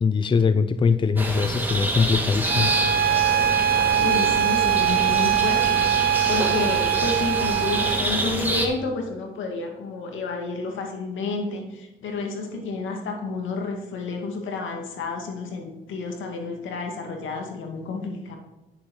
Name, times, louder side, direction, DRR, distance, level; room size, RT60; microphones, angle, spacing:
voice 1, 0.0-2.8, left 5 dB, 25° left, 12 dB, 0.5 m, -22 dB
sound 1, 1.2-8.7, right 1 dB, 10° right, 1.8 m, -27 dB
Bowed string instrument, 2.4-8.1, right 10 dB, 45° right, 0.9 m, -22 dB
voice 2, 4.0-5.8 6.3-18.4, left 3 dB, 75° left, 2 dB, 2.0 m, -30 dB
9.7 x 7.2 x 4.8 m, 0.97 s
cardioid pair, 90°, 20 cm